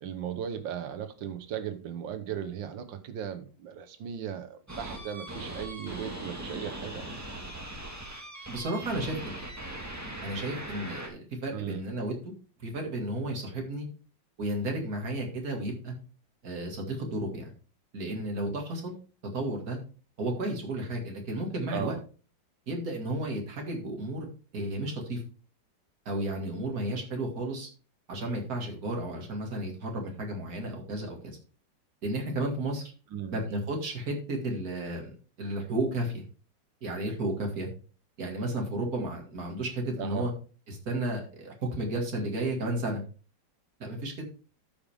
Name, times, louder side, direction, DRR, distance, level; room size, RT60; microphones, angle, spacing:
voice 1, 0.0-7.0 11.5-11.8 21.7-22.0 33.1-33.4 40.0-40.3, right 9 dB, 85° right, 1.7 m, -37 dB
sound 1, 4.7-11.1, right 1 dB, 10° right, 1.6 m, -40 dB
voice 2, 8.5-9.2 10.2-12.2 12.6-13.9 14.4-15.9 16.4-17.5 17.9-18.9 19.3-19.8 20.2-21.9 22.7-24.3 24.5-25.2 26.1-27.7 28.1-31.4 32.0-32.9 33.3-35.1 35.4-36.2 36.8-37.7 38.2-40.3 40.7-43.0 43.8-44.1, right 1 dB, 55° right, 2.5 m, -33 dB
13.5 x 5.2 x 3.5 m
omnidirectional pair, 1.9 m